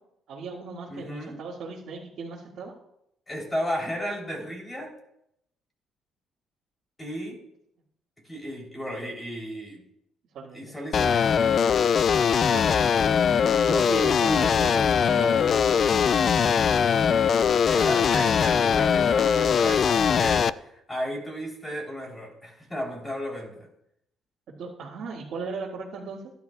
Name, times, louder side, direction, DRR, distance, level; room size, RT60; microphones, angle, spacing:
voice 1, 0.3-2.7 10.3-10.7 12.5-12.6 13.4-16.1 24.6-26.3, right 4 dB, 60° right, -7 dB, 2.0 m, -37 dB
voice 2, 0.9-1.4 3.3-4.9 7.0-7.4 8.2-9.8 10.5-11.2 17.6-23.7, equal, 15° left, 0 dB, 3.4 m, -34 dB
sound 1, 10.9-20.5, left 7 dB, 45° left, 0.3 m, -21 dB
16.5 x 11.0 x 2.3 m, 0.78 s
cardioid pair, 115°, 0 cm